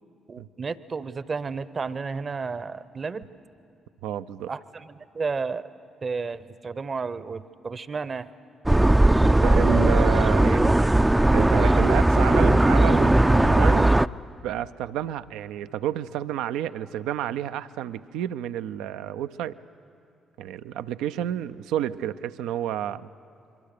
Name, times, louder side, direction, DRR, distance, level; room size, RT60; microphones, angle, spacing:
voice 1, 0.3-3.3 4.5-5.7 6.0-8.3, right 4 dB, 40° right, 16 dB, 0.9 m, -32 dB
voice 2, 4.0-4.5 9.2-10.8 11.3-13.9 14.4-19.6 20.4-23.1, right 11 dB, 75° right, 12 dB, 0.5 m, -30 dB
sound 1, 8.7-14.1, right 1 dB, 15° right, 0.5 m, -18 dB
28.0 x 23.0 x 6.7 m, 2.5 s
hypercardioid pair, 45°, 0 cm